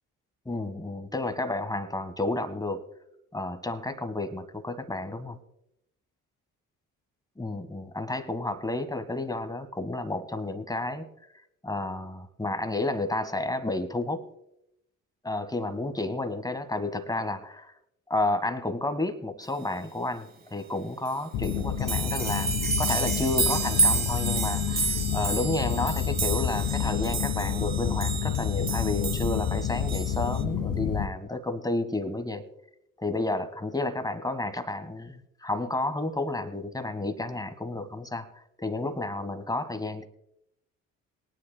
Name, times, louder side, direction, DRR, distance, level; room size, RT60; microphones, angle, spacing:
voice 1, 0.4-2.9 3.3-5.4 7.4-11.1 11.6-14.3 15.2-17.7 18.1-32.4 33.0-38.3 38.6-40.1, left 2 dB, 10° left, 10 dB, 1.5 m, -31 dB
sound 1, 21.1-21.2 21.4-30.4, right 4 dB, 20° right, 1.3 m, -30 dB
sound 2, 21.3-31.1, left 8 dB, 70° left, 1.4 m, -29 dB
22.5 x 9.9 x 2.2 m, 0.80 s
figure-of-eight pair, 45°, 41 cm